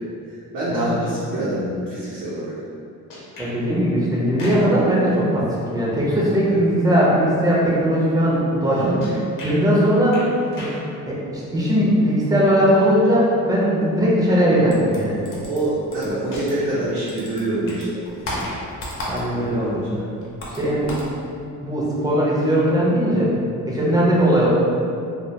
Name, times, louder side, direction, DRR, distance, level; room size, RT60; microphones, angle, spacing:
voice 1, 0.5-2.5 6.5-6.6 8.6-8.9 15.5-18.3 19.2-19.9, right 1 dB, 90° right, -10 dB, 0.7 m, -26 dB
sound 1, 3.1-3.6 4.2-4.9 9.0-9.6 10.1-10.9 12.7-12.8 14.0-14.1 16.3-16.9 17.4-17.9 18.2-18.7 19.3-19.4, left 1 dB, 80° left, 0.7 m, -36 dB
voice 2, 3.4-5.5 5.7-9.0 9.4-10.3 10.6-10.7 11.1-15.3 19.0-19.8 20.5-20.9 21.6-23.3 23.7-24.5, equal, 10° right, -7 dB, 0.4 m, -19 dB
sound 2, 14.7-16.8 17.1-19.6 19.8-21.1, left 1 dB, 45° left, 0.5 m, -33 dB
2.1 x 2.1 x 2.7 m, 2.5 s
cardioid pair, 165°, 32 cm